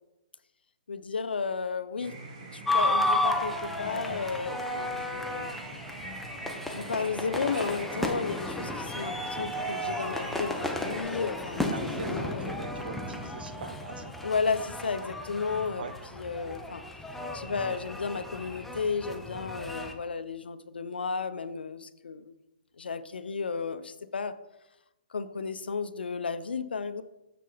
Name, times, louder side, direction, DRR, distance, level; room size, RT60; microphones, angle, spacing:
voice 1, 0.9-2.2 2.5-5.5 6.7-12.5 14.2-16.8 17.3-22.3 22.8-24.3 25.1-27.0, left 5 dB, 85° left, 12 dB, 0.5 m, -33 dB
sound 1, 2.0-11.0, right 3 dB, 45° right, 1.8 m, -44 dB
sound 2, 2.7-19.9, left 1 dB, 5° left, 0.6 m, -33 dB
voice 2, 11.7-14.1 15.8-15.9, right 4 dB, 70° right, 10 dB, 0.8 m, -41 dB
6.8 x 6.4 x 3.9 m, 0.94 s
hypercardioid pair, 140°, 5 cm